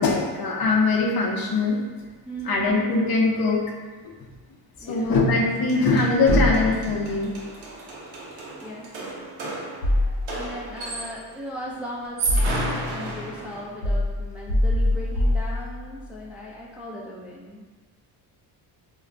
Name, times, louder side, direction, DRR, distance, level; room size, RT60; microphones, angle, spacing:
voice 1, 0.0-1.8 2.4-3.6 4.0-4.1 4.9-7.3 9.4-9.5, left 3 dB, 50° left, 0 dB, 0.6 m, -22 dB
voice 2, 2.3-2.7 4.8-5.1 8.6-8.9 9.9-17.6, equal, 5° right, -4 dB, 0.4 m, -38 dB
sound 1, 5.4-5.5 5.7-11.3 12.0-13.8, right 2 dB, 85° right, 0.8 m, -33 dB
sound 2, 6.3-7.2 9.8-10.7 11.6-12.9 13.8-16.1, left 1 dB, 85° left, 1.0 m, -24 dB
2.3 x 2.1 x 3.7 m, 1.3 s
supercardioid pair, 65°, 46 cm